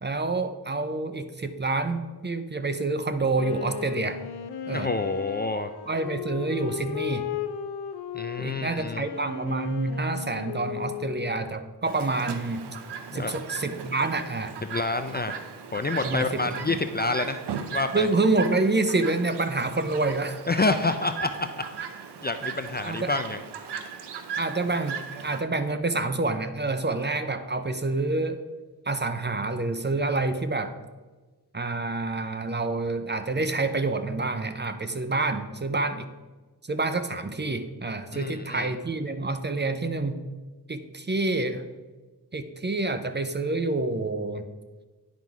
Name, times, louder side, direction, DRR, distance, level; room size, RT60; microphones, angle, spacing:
voice 1, 0.0-4.2 4.7-4.9 5.9-7.2 8.4-12.6 13.1-14.6 16.0-16.4 16.7-16.8 17.9-20.4 22.8-23.1 24.4-28.4 28.9-30.7 31.5-36.1 36.7-40.2 40.7-41.6 42.3-44.5, right 3 dB, 25° right, 9 dB, 0.6 m, -27 dB
Wind instrument woodwind instrument, 3.3-11.6, left 8 dB, 70° left, 0.7 m, -36 dB
voice 2, 4.7-5.7 8.1-9.1 13.1-13.4 14.6-15.4 15.7-17.4 17.7-18.1 20.5-21.7 22.2-23.4 38.1-38.7, left 3 dB, 25° left, 8 dB, 0.5 m, -28 dB
Chirp tweet, 11.8-25.4, right 6 dB, 75° right, 0.7 m, -38 dB
10.5 x 3.9 x 4.7 m, 1.3 s
cardioid pair, 55°, 41 cm